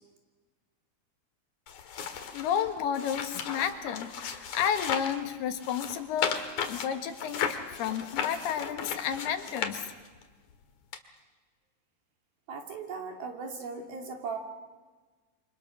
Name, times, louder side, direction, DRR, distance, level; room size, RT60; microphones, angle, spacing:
sound 1, 1.7-5.2 5.6-10.2 10.9-11.0, left 7 dB, 55° left, 2.6 m, -35 dB
voice 1, 2.3-9.9, left 8 dB, 90° left, 7 dB, 3.5 m, -32 dB
voice 2, 12.5-14.4, right 5 dB, 70° right, 2 dB, 4.6 m, -38 dB
28.0 x 25.0 x 6.2 m, 1.3 s
omnidirectional pair, 4.5 m